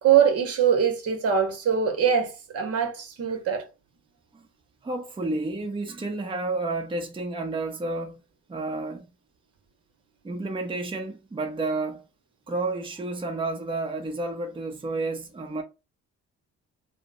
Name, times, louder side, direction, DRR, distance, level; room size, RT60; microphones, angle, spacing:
voice 1, 0.0-3.7, right 8 dB, 50° right, 1.0 m, -23 dB
voice 2, 4.8-8.2 8.5-9.0 10.2-12.0 12.5-15.6, right 2 dB, 15° right, 0.7 m, -31 dB
3.1 x 2.0 x 3.9 m
cardioid pair, 90°, 30 cm